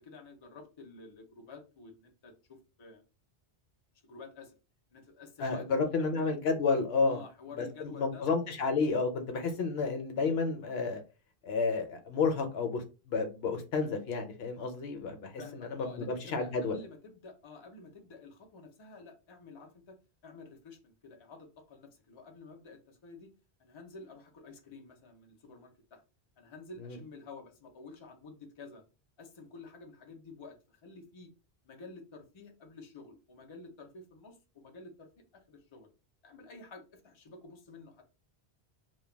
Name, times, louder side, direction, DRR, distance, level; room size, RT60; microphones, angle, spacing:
voice 1, 0.0-3.0 4.0-4.5 4.9-6.3 7.0-8.2 15.4-20.0 20.2-23.3 23.6-26.0 26.4-28.8 29.2-31.3 31.6-35.9 36.2-38.0, left 3 dB, 40° left, 0.5 m, -50 dB
voice 2, 5.4-7.2 7.6-11.0 11.4-16.8 26.8-27.0, left 4 dB, 70° left, 0.8 m, -31 dB
2.2 x 2.2 x 3.2 m
omnidirectional pair, 1.1 m